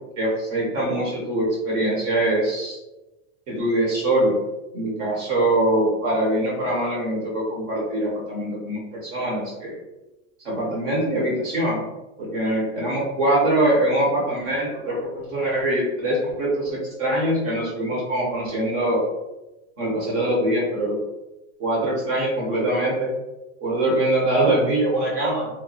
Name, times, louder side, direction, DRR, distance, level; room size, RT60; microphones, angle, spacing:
voice 1, 0.2-2.8 3.5-4.4 4.7-9.8 10.4-11.8 12.2-19.0 19.8-21.0 21.6-23.1 23.6-25.5, right 1 dB, 25° right, -3 dB, 0.5 m, -23 dB
2.9 x 2.3 x 2.6 m, 1.0 s
supercardioid pair, 170°, 40 cm